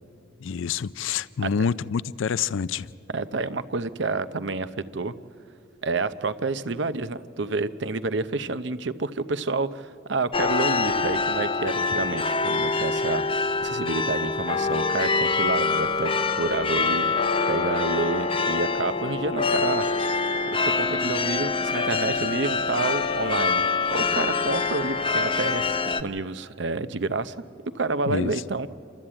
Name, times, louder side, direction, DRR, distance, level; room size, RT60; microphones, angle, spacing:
voice 1, 0.4-2.9 28.1-28.3, left 6 dB, 75° left, 0.4 m, -27 dB
voice 2, 3.1-5.1 5.8-13.2 13.6-16.1 16.4-17.1 17.5-19.9 20.8-23.6 23.9-27.3 27.7-28.7, right 3 dB, 60° right, 0.7 m, -29 dB
sound 1, 10.3-26.0, left 4 dB, 25° left, 0.7 m, -25 dB
29.0 x 13.0 x 8.8 m
head